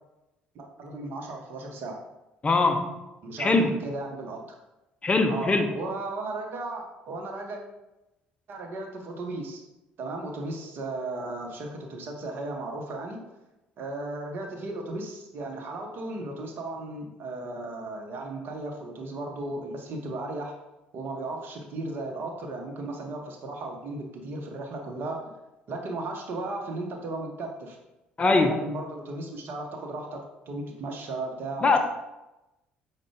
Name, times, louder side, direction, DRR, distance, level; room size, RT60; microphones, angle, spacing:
voice 1, 0.5-2.0 3.2-4.4 5.3-7.6 8.5-9.6 10.0-13.2 13.8-20.5 20.9-25.3 25.7-27.8 28.2-31.8, right 2 dB, 50° right, 2 dB, 0.7 m, -35 dB
voice 2, 2.4-3.0 3.4-3.7 5.0-5.7 28.2-28.6 31.6-31.8, left 3 dB, 25° left, 6 dB, 0.4 m, -22 dB
5.0 x 2.2 x 3.4 m, 0.97 s
figure-of-eight pair, 55°, 5 cm